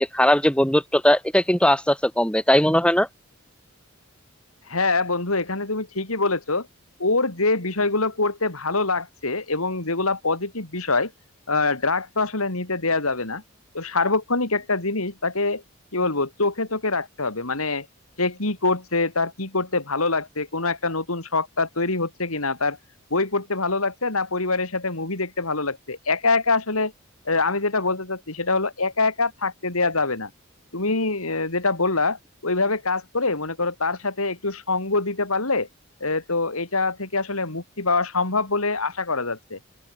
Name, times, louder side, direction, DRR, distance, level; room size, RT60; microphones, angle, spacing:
voice 1, 0.1-3.1, equal, 5° left, 7.7 m, -19 dB
voice 2, 4.7-6.7 7.0-11.1 11.5-13.4 13.7-15.6 15.9-17.9 18.2-22.8 23.1-26.9 27.3-30.3 30.7-35.7 36.0-39.6, left 3 dB, 80° left, 3.9 m, -24 dB
open air
head